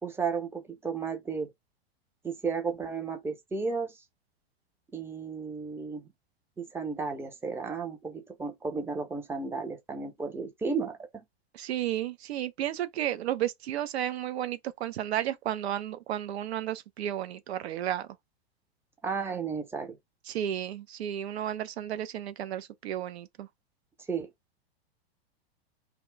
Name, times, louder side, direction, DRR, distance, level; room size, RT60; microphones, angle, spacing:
voice 1, 0.0-1.5 2.2-4.0 4.9-6.1 6.6-11.2 19.0-20.0 24.1-24.3, right 5 dB, 10° right, 0.6 m, -33 dB
voice 2, 11.5-18.1 20.3-23.5, right 11 dB, 80° right, 0.6 m, -33 dB
2.9 x 2.1 x 3.2 m
hypercardioid pair, 120°, 31 cm